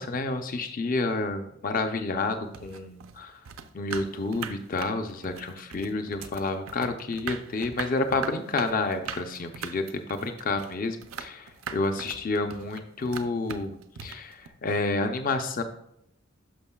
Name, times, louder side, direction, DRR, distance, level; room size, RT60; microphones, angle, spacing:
voice 1, 0.0-3.4 3.7-15.6, left 3 dB, 40° left, 7 dB, 0.5 m, -30 dB
sound 1, 2.5-14.5, right 7 dB, 80° right, 0.5 m, -40 dB
11.0 x 6.2 x 2.3 m, 0.76 s
head